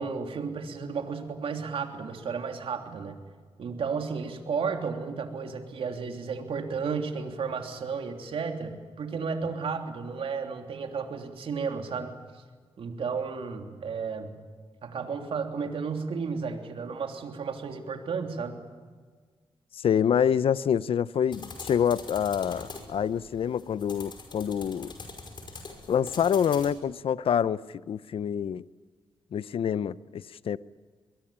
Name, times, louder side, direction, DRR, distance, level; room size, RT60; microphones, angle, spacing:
voice 1, 0.0-3.2 3.6-12.1 12.8-14.3 14.8-18.6, right 5 dB, 75° right, 3.2 m, -33 dB
voice 2, 19.7-24.9 25.9-28.6 29.3-30.6, left 8 dB, 75° left, 0.6 m, -26 dB
sound 1, 21.3-26.7, left 3 dB, 55° left, 5.5 m, -43 dB
22.5 x 21.5 x 8.8 m
cardioid pair, 75°, 10 cm